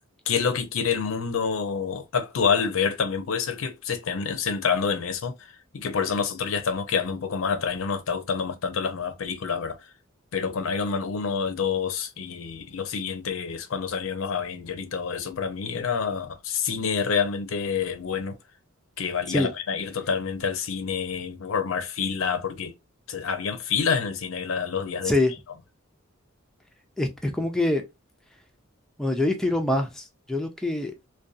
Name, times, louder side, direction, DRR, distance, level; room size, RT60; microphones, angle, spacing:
voice 1, 0.3-9.9 10.3-18.4 19.0-22.7 23.1-25.1, left 6 dB, 70° left, 0.5 m, -27 dB
voice 2, 27.0-27.8 29.0-30.9, left 1 dB, ahead, 0.3 m, -25 dB
2.6 x 2.2 x 2.3 m
head